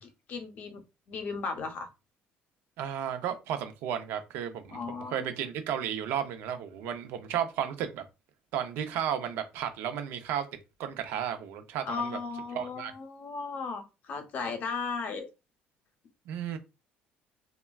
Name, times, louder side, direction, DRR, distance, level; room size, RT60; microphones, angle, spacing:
voice 1, 0.0-0.8 1.1-1.9 4.7-5.3 11.9-15.3, left 4 dB, 50° left, 0.7 m, -36 dB
voice 2, 2.8-8.0 8.5-10.5 10.8-12.2 12.5-12.9 16.3-16.6, right 9 dB, 75° right, 0.6 m, -33 dB
3.2 x 2.2 x 2.3 m
cardioid pair, 130°, 4 cm